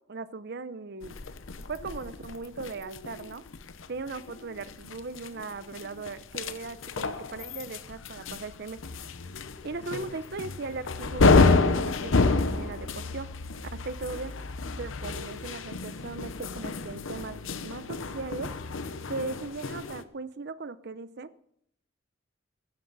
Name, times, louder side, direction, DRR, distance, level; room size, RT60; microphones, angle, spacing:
voice 1, 0.1-1.2 1.7-3.4 3.9-8.8 9.6-13.3 13.8-14.3 14.8-17.4 17.6-18.5 19.1-21.3, right 3 dB, 55° right, 15 dB, 0.6 m, -38 dB
sound 1, 1.0-20.0, left 3 dB, 80° left, 0.8 m, -29 dB
15.5 x 13.0 x 4.0 m, 0.70 s
head